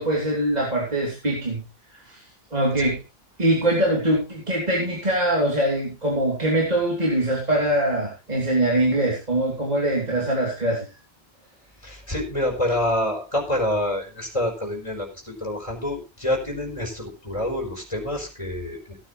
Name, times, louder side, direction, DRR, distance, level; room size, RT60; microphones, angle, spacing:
voice 1, 0.0-1.6 1.9-2.2 2.5-3.0 3.4-10.8, right 1 dB, 40° right, -3 dB, 3.4 m, -23 dB
voice 2, 11.8-19.0, left 1 dB, 30° left, 0 dB, 4.4 m, -27 dB
17.0 x 9.8 x 3.2 m, 0.30 s
omnidirectional pair, 1.0 m